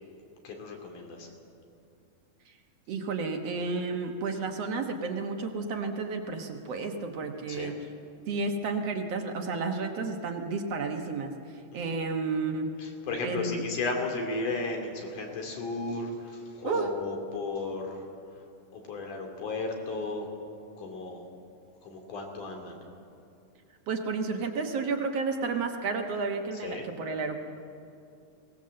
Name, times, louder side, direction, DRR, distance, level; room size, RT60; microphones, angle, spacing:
voice 1, 0.4-1.3 7.5-7.7 11.7-11.9 12.8-18.0 18.7-20.3 20.8-21.3 21.8-22.8 26.5-26.9, left 3 dB, 85° left, 2 dB, 4.3 m, -34 dB
voice 2, 2.9-7.7 8.3-11.3 11.7-12.7 13.2-13.6 16.6-16.9 23.9-27.4, right 4 dB, 60° right, 4 dB, 2.2 m, -31 dB
22.0 x 18.5 x 7.7 m, 2.5 s
omnidirectional pair, 3.5 m